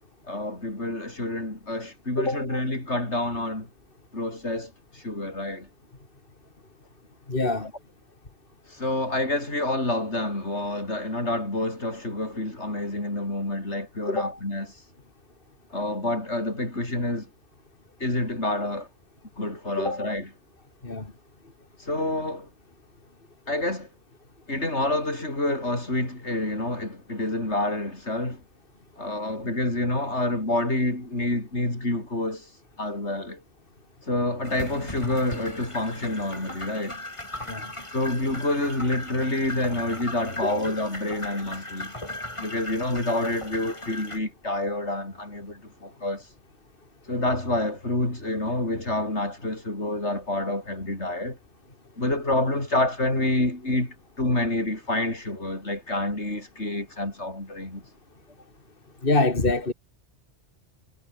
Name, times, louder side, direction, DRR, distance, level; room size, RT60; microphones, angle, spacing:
voice 1, 0.3-3.7 4.1-5.7 8.7-14.7 15.7-17.3 18.0-18.9 19.4-20.3 21.8-22.5 23.5-23.9 24.5-28.4 29.0-32.5 32.8-33.4 34.0-37.0 37.9-41.9 42.4-46.3 47.1-51.4 52.0-57.8, left 1 dB, 75° left, 6.6 m, -28 dB
voice 2, 7.3-7.7 14.1-14.3 19.8-19.9 20.8-21.0 37.5-37.6 59.0-59.7, left 2 dB, 50° left, 3.0 m, -24 dB
sound 1, 34.4-44.2, left 1 dB, 25° left, 3.6 m, -38 dB
omnidirectional pair, 1.2 m